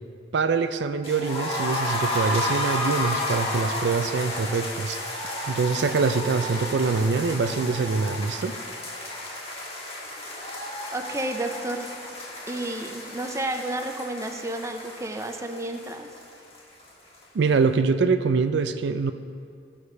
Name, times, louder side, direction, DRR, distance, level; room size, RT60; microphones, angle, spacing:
voice 1, 0.3-5.0 5.5-8.6 17.3-19.1, right 4 dB, 70° right, 10 dB, 0.4 m, -24 dB
sound 1, 1.0-16.9 17.1-17.2 17.6-17.7, left 1 dB, 35° left, 1.6 m, -32 dB
voice 2, 10.9-11.9 12.5-16.1, right 2 dB, 15° right, 5 dB, 0.6 m, -31 dB
14.5 x 5.0 x 5.4 m, 2.3 s
head